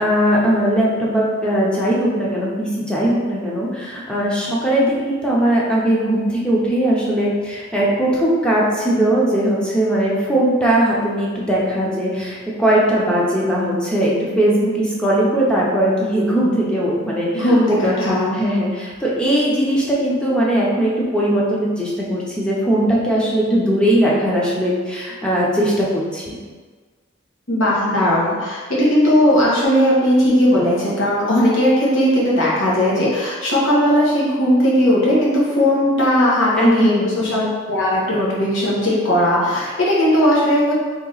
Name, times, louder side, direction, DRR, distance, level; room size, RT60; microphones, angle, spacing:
voice 1, 0.0-17.8 18.3-26.4 36.6-37.4, right 1 dB, 5° left, -6 dB, 0.6 m, -19 dB
voice 2, 17.3-18.4 27.5-40.7, equal, 75° left, -6 dB, 1.2 m, -17 dB
3.2 x 2.9 x 3.9 m, 1.5 s
head